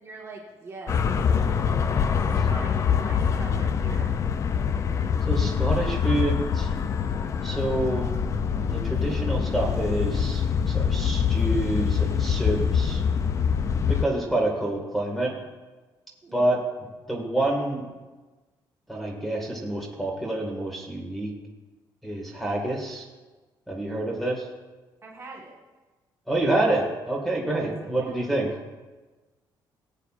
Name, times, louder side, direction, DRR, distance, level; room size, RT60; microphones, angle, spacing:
voice 1, 0.0-1.4 2.1-4.2 16.2-16.5 25.0-25.5 27.6-28.3, right 3 dB, 30° right, -3 dB, 1.5 m, -43 dB
sound 1, 0.9-14.0, left 7 dB, 35° left, 0.4 m, -24 dB
voice 2, 5.3-6.7 7.4-8.1 8.7-13.0 13.9-15.4 16.3-16.6 17.1-17.9 18.9-21.3 22.0-23.1 23.7-24.5 26.3-28.6, right 1 dB, ahead, 0 dB, 1.9 m, -27 dB
20.0 x 8.2 x 2.5 m, 1.2 s
cardioid pair, 160°, 9 cm